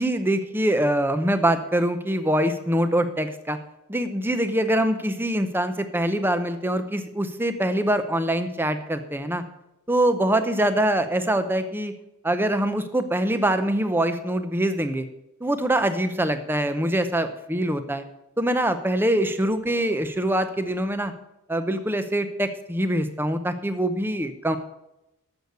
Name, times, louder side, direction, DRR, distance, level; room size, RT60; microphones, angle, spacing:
voice 1, 0.0-3.6 3.9-9.4 9.9-11.9 12.2-15.1 15.4-18.0 18.4-21.1 21.5-24.6, right 1 dB, 10° right, 10 dB, 0.7 m, -24 dB
13.0 x 6.6 x 6.8 m, 0.89 s
head